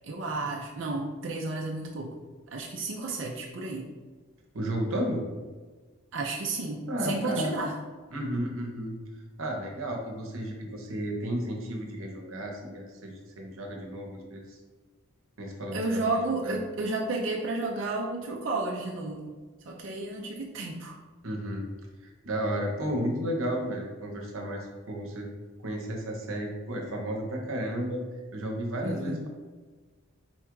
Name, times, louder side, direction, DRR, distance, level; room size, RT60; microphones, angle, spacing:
voice 1, 0.0-2.2 2.5-3.9 6.1-7.8 15.7-19.3 19.6-20.9 28.8-29.3, right 2 dB, 60° right, -1 dB, 0.5 m, -32 dB
voice 2, 4.5-5.2 6.9-7.5 8.1-9.0 9.4-14.6 15.4-15.8 16.4-16.6 21.2-21.7 22.2-25.3 25.6-28.0 28.3-29.3, equal, 80° right, 1 dB, 0.8 m, -33 dB
4.3 x 2.4 x 4.5 m, 1.4 s
head